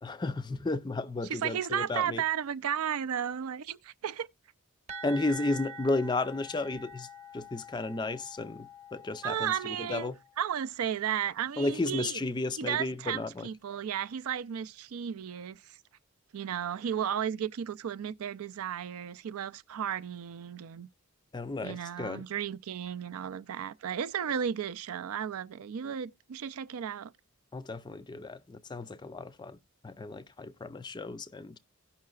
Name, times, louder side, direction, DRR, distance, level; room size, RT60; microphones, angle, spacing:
voice 1, 0.0-2.2 5.0-7.1 7.3-10.2 11.6-13.5 21.3-22.2 27.5-29.6 29.8-31.6, left 2 dB, 20° left, 0.4 m, -33 dB
voice 2, 1.3-4.3 9.2-10.1 10.4-12.2 12.6-15.8 16.3-20.9 21.6-27.1, right 9 dB, 80° right, 0.4 m, -34 dB
sound 1, 4.9-10.5, right 1 dB, 30° right, 0.9 m, -46 dB
16.5 x 5.6 x 2.3 m
head